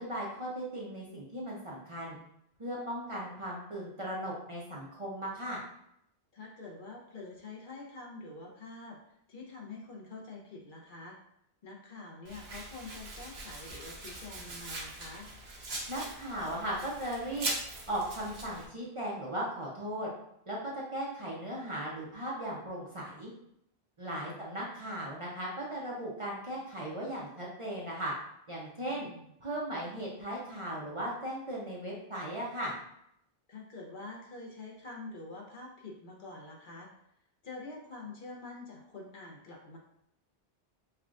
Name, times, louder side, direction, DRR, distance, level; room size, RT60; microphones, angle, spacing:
voice 1, 0.0-2.2 2.6-5.6 15.9-17.5 17.9-20.1 20.5-23.3 24.0-28.1 28.5-29.1 29.4-32.7, right 1 dB, 35° right, -5 dB, 0.6 m, -37 dB
voice 2, 6.3-11.2 11.6-15.3 24.1-24.4 28.9-29.3 33.5-36.9 37.4-39.8, left 3 dB, 55° left, -1 dB, 0.9 m, -46 dB
Domestic sounds home sounds, 12.2-18.6, right 2 dB, 85° right, 1.1 m, -41 dB
5.6 x 2.3 x 2.4 m, 0.76 s
omnidirectional pair, 1.0 m